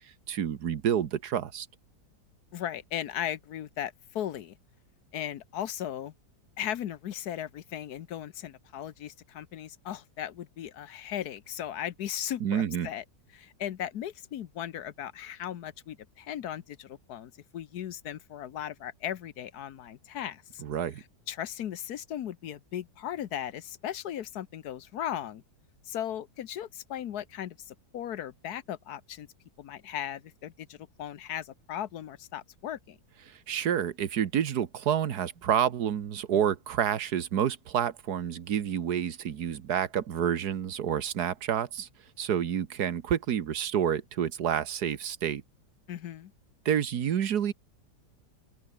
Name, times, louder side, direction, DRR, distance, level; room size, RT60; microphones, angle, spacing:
voice 1, 0.3-1.7 12.4-12.9 20.6-21.0 33.5-41.9 42.2-45.4 46.6-47.5, right 9 dB, 75° right, 1.7 m, -29 dB
voice 2, 2.5-4.6 5.1-6.1 6.6-13.0 13.3-20.6 21.3-25.4 25.8-29.3 29.6-33.0 45.9-46.3, left 10 dB, 70° left, 1.4 m, -37 dB
open air
omnidirectional pair, 1.8 m